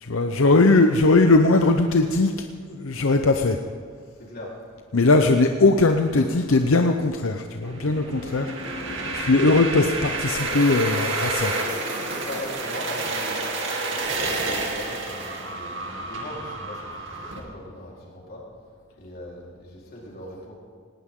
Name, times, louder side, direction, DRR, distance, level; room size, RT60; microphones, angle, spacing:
voice 1, 0.0-2.3 2.7-3.6 4.9-8.5 9.1-11.5, left 3 dB, 85° left, 5 dB, 0.8 m, -19 dB
voice 2, 4.1-4.5 5.1-5.2 6.1-7.0 12.0-13.4 13.9-18.4 19.0-20.5, left 1 dB, 50° left, -4 dB, 4.1 m, -40 dB
sound 1, 7.6-17.4, right 2 dB, 65° right, 2.6 m, -29 dB
18.5 x 18.5 x 3.8 m, 2.1 s
head